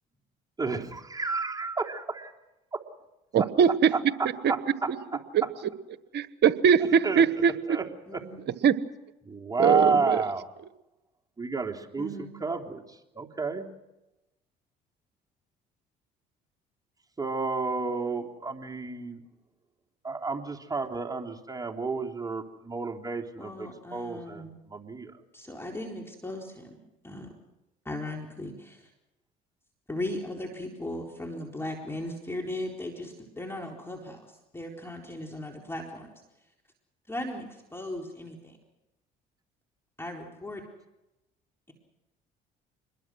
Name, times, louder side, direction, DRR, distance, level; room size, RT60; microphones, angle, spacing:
voice 1, 0.6-2.3 2.7-2.8 3.4-3.5 4.5-4.9 6.8-7.2 7.7-7.8 8.1-8.2 9.2-10.4 11.4-12.8 13.1-13.6 17.2-19.2 20.0-25.1, right 4 dB, 20° right, 1 dB, 3.4 m, -31 dB
voice 2, 3.3-3.9 4.9-5.0 5.3-5.4 6.1-7.5 8.6-8.7 9.6-10.2, right 7 dB, 60° right, 14 dB, 1.3 m, -21 dB
voice 3, 8.1-8.4 12.0-12.3 23.4-24.5 25.3-26.8 27.0-27.3 27.8-28.9 29.9-36.1 37.1-38.6 40.0-40.6, left 1 dB, 10° left, 1 dB, 4.1 m, -37 dB
26.5 x 21.5 x 6.3 m, 0.97 s
supercardioid pair, 70°, 20 cm